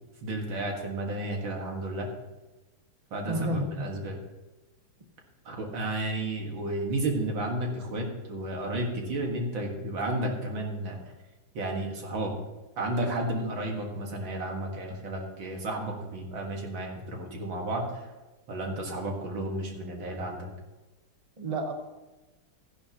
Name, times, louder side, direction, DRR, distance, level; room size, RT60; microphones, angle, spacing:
voice 1, 0.2-2.1 3.1-4.2 5.5-11.0 11.5-12.3 12.8-17.9 18.5-20.5, right 1 dB, 65° right, 1 dB, 2.5 m, -32 dB
voice 2, 3.3-3.9 21.4-21.7, right 1 dB, 35° right, 5 dB, 0.6 m, -30 dB
14.5 x 10.5 x 2.9 m, 1.1 s
omnidirectional pair, 2.3 m